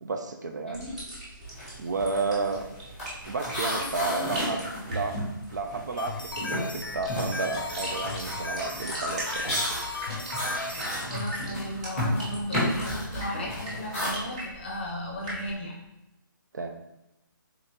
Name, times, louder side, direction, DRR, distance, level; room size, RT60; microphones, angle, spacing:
voice 1, 0.0-0.8 1.8-2.7 3.3-4.6 4.9-5.2 5.5-9.6 16.5-16.7, right 4 dB, 55° right, 5 dB, 0.4 m, -31 dB
voice 2, 0.7-1.0 1.4-1.8 3.7-4.9 11.0-15.7, left 1 dB, 30° left, -2 dB, 0.7 m, -36 dB
sound 1, 0.7-15.5, right 1 dB, 20° right, 0.7 m, -40 dB
sound 2, 1.5-1.8 2.0-6.1 6.4-14.1, equal, ahead, 1.1 m, -33 dB
sound 3, 6.0-11.0, left 3 dB, 70° left, 0.5 m, -36 dB
3.7 x 3.4 x 2.8 m, 0.92 s
hypercardioid pair, 175°, 12 cm